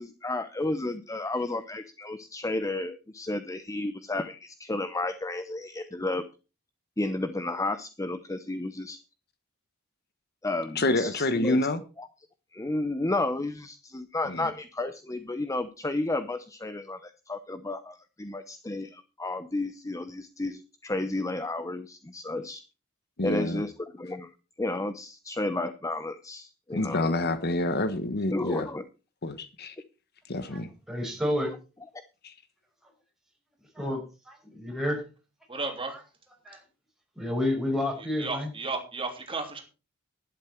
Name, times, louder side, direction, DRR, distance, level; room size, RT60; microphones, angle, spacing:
voice 1, 0.0-6.2 7.0-9.0 10.4-11.6 12.0-12.1 12.5-22.6 23.2-24.3 24.6-27.1 28.3-28.8, left 2 dB, 15° left, 0.7 m, -32 dB
voice 2, 10.7-11.8 14.3-14.5 23.2-23.6 26.7-28.7 29.2-29.7 30.3-30.7 32.2-32.3, left 2 dB, 50° left, 1.1 m, -28 dB
voice 3, 30.9-31.5 33.8-34.0 34.5-35.0 36.4-36.6 37.2-38.5, left 1 dB, ahead, 5.6 m, -29 dB
voice 4, 35.5-36.0 38.0-39.6, right 3 dB, 25° right, 3.1 m, -34 dB
11.5 x 11.0 x 4.5 m
head